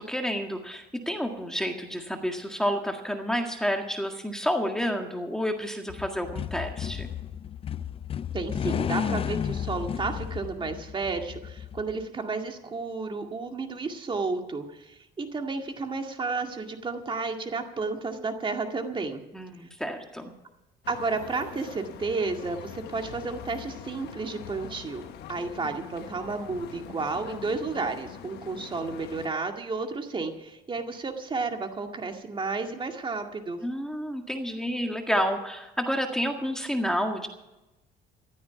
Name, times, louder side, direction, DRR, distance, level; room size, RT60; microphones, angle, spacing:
voice 1, 0.0-7.1 19.3-20.3 33.6-37.3, equal, 5° left, 4 dB, 1.8 m, -30 dB
sound 1, 5.9-12.0, left 8 dB, 35° left, 0.5 m, -33 dB
voice 2, 8.3-19.2 19.6-19.7 20.9-25.0 25.3-33.6, right 4 dB, 30° right, 4 dB, 2.1 m, -32 dB
sound 2, 20.8-29.3, left 10 dB, 80° left, 1.2 m, -43 dB
14.5 x 13.0 x 5.9 m, 0.99 s
cardioid pair, 110°, 17 cm